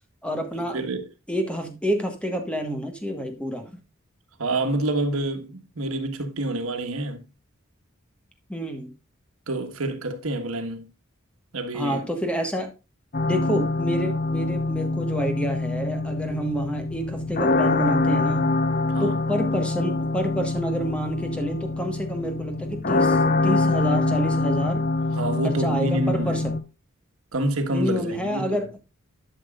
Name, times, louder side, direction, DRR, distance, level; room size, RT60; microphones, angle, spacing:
voice 1, 0.2-0.8 1.3-3.7 8.5-8.9 11.7-12.7 13.2-18.6 19.0-24.8 25.4-26.6 27.7-28.8, equal, 5° left, 1.4 m, -28 dB
voice 2, 4.4-7.2 9.5-10.9 11.5-12.1 18.9-19.1 25.2-26.4 27.3-28.6, right 1 dB, 85° right, 1.5 m, -27 dB
sound 1, 13.1-26.6, left 2 dB, 45° left, 0.8 m, -24 dB
12.0 x 6.2 x 2.5 m
head